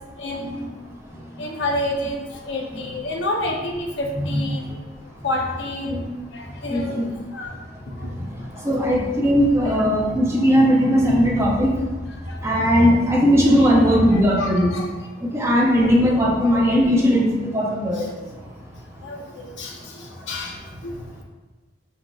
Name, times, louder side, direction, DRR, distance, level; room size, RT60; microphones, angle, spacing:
voice 1, 0.2-0.7 1.4-4.7 5.2-6.0 6.3-7.1 7.3-7.5 8.0-8.1 9.6-9.8 12.3-12.7 13.6-14.9 15.8-16.2 17.9-18.0 19.0-20.6 20.8-20.9, left 1 dB, 80° left, 1 dB, 0.8 m, -29 dB
voice 2, 6.7-7.1 8.2-8.3 8.6-11.7 12.4-14.7 15.2-18.1, equal, 15° right, -3 dB, 0.8 m, -18 dB
4.6 x 4.3 x 2.4 m, 1.2 s
head